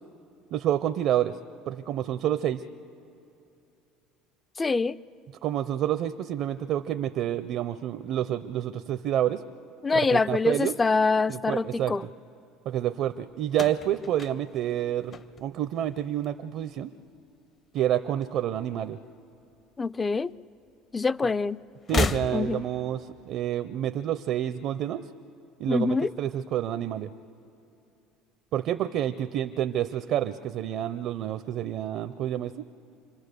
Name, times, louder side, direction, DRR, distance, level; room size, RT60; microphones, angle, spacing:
voice 1, 0.5-1.4 1.7-2.6 5.4-9.4 9.9-10.7 11.3-11.9 12.7-16.9 17.7-19.0 21.9-25.1 25.6-27.1 28.5-32.5, right 11 dB, 60° right, 11 dB, 0.6 m, -28 dB
voice 2, 4.6-5.0 9.8-12.0 19.8-20.3 20.9-21.6 21.9-22.6 25.7-26.1, left 4 dB, 20° left, 18 dB, 0.4 m, -25 dB
sound 1, 13.5-15.8 16.1-16.7 17.8-18.8 19.0-19.2 20.3-20.4 21.8-22.8, left 4 dB, 40° left, 0.8 m, -33 dB
26.5 x 22.5 x 6.8 m, 2.7 s
supercardioid pair, 85°, 0 cm